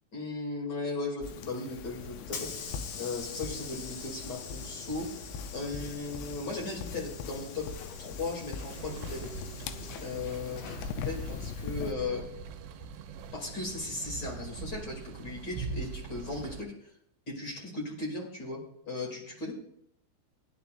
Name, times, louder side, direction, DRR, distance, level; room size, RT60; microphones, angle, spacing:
voice 1, 0.1-5.2 5.5-7.7 8.0-9.3 10.0-12.2 13.3-16.7 17.3-18.6 18.9-19.6, left 3 dB, 30° left, -1 dB, 2.1 m, -37 dB
sound 1, 1.2-11.9, left 5 dB, 90° left, 3.2 m, -41 dB
Hiss / Sliding door, 1.7-12.5, left 5 dB, 70° left, 2.5 m, -45 dB
sound 2, 8.7-16.6, right 5 dB, 80° right, 3.1 m, -42 dB
19.5 x 10.0 x 2.5 m, 0.71 s
omnidirectional pair, 5.7 m